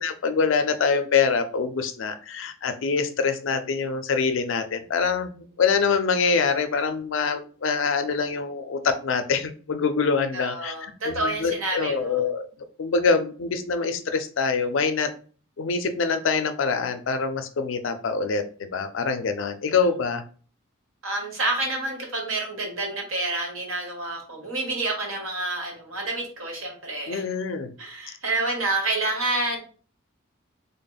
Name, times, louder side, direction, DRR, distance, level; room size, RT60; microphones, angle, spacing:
voice 1, 0.0-5.3 5.6-10.7 11.1-12.5 12.8-15.1 15.6-18.4 18.7-20.2 27.1-27.7, left 5 dB, 70° left, 9 dB, 0.4 m, -25 dB
voice 2, 10.3-12.2 19.8-19.9 21.0-27.2 27.8-29.6, right 2 dB, 85° right, 1 dB, 1.2 m, -28 dB
3.5 x 2.1 x 3.9 m, 0.41 s
head